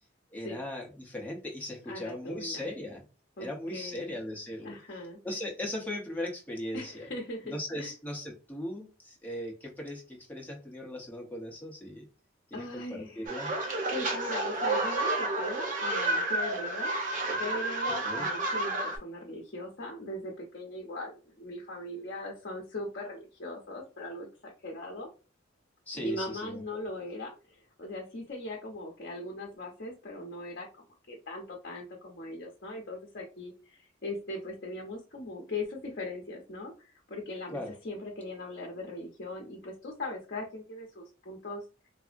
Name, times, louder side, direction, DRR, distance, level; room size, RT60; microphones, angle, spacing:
voice 1, 0.3-3.0 3.4-4.7 5.2-7.1 7.5-12.1 12.5-13.5 17.8-18.3 25.9-26.6 37.5-37.7, left 1 dB, 10° left, -1 dB, 0.7 m, -38 dB
voice 2, 1.9-2.7 3.4-4.1 4.6-5.2 6.7-7.9 12.5-13.4 13.9-16.9 17.4-25.1 25.9-41.6, left 2 dB, 55° left, 0 dB, 0.7 m, -40 dB
sound 1, 13.3-19.0, right 2 dB, 45° right, 0.8 m, -30 dB
3.3 x 2.0 x 2.4 m, 0.32 s
head